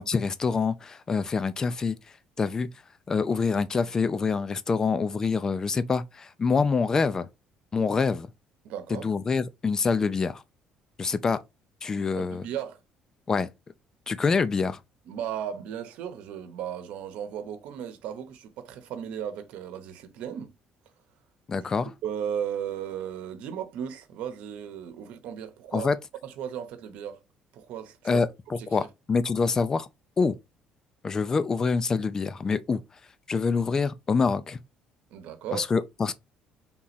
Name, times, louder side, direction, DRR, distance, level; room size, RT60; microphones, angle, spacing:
voice 1, 0.0-2.0 2.4-2.7 3.1-7.3 7.7-8.3 8.9-10.4 11.0-11.4 11.8-12.5 13.3-13.5 14.1-14.8 21.5-21.9 25.7-26.0 28.0-29.9 30.2-30.4 31.0-32.8 33.3-34.6 35.5-36.1, left 5 dB, 25° left, 0.4 m, -26 dB
voice 2, 8.6-9.1 12.2-12.8 15.1-20.5 21.6-21.7 22.0-25.9 26.2-27.2 27.5-28.2 28.6-28.9 35.1-35.7, right 9 dB, 75° right, 0.9 m, -36 dB
3.7 x 3.0 x 4.2 m
cardioid pair, 130°, 2 cm